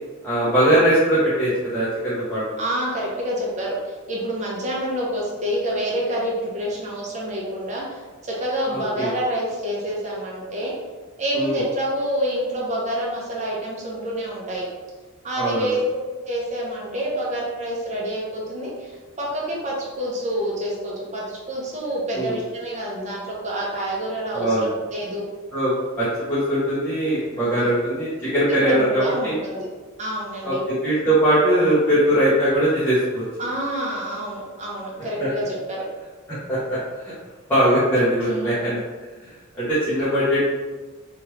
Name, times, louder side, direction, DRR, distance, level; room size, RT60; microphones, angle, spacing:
voice 1, 0.2-2.6 8.7-9.1 11.3-11.5 15.4-15.7 22.1-22.4 24.3-24.8 25.5-25.7 26.0-29.3 30.4-33.2 35.2-35.3 36.3-37.1 37.5-38.8 39.2-40.4, right 1 dB, 10° left, -12 dB, 0.8 m, -21 dB
voice 2, 2.6-10.7 11.2-14.6 15.2-25.2 27.4-27.8 28.6-29.7 30.0-30.6 33.4-35.8 38.3-38.8, right 1 dB, 35° right, -4 dB, 0.8 m, -27 dB
3.1 x 2.4 x 3.1 m, 1.3 s
head